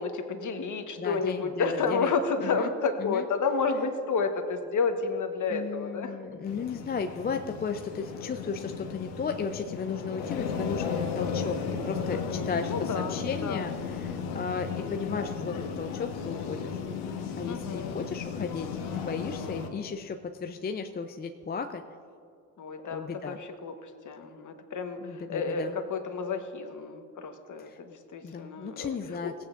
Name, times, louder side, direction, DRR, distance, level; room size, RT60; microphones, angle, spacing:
voice 1, 0.0-6.4 12.1-14.3 17.5-18.0 22.6-28.9 29.2-29.3, left 4 dB, 40° left, 6 dB, 1.3 m, -31 dB
voice 2, 1.0-2.1 2.4-2.7 3.0-3.3 5.5-11.6 11.8-16.8 17.4-18.7 18.9-21.8 22.9-23.4 25.0-25.8 27.6-27.8 28.2-29.3, left 5 dB, 20° left, 6 dB, 0.5 m, -35 dB
sound 1, 6.4-19.7, left 6 dB, 80° left, 1.3 m, -35 dB
17.0 x 9.0 x 2.6 m, 2.5 s
hypercardioid pair, 65°, 46 cm